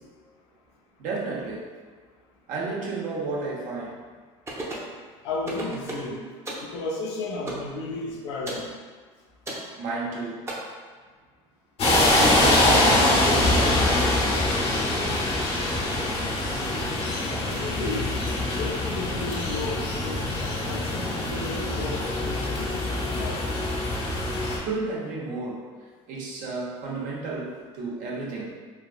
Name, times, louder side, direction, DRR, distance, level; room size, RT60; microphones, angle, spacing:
voice 1, 1.0-1.8 2.5-4.0 9.8-10.5 11.8-14.3 24.6-25.7 26.1-28.6, right 3 dB, 65° right, -4 dB, 0.9 m, -32 dB
sound 1, 4.5-4.9 5.5-6.1 6.5-6.7 7.5-7.7 8.5-8.7 9.5-9.7 10.5-10.6, right 2 dB, 20° right, 0.7 m, -33 dB
voice 2, 5.2-6.2 6.6-8.7 17.4-18.2 18.6-22.7 23.0-23.5 24.1-24.2, left 3 dB, 90° left, 0 dB, 0.5 m, -33 dB
sound 2, 11.8-24.6, left 1 dB, 45° left, 0.7 m, -24 dB
3.3 x 2.4 x 2.4 m, 1.5 s
supercardioid pair, 90°, 14 cm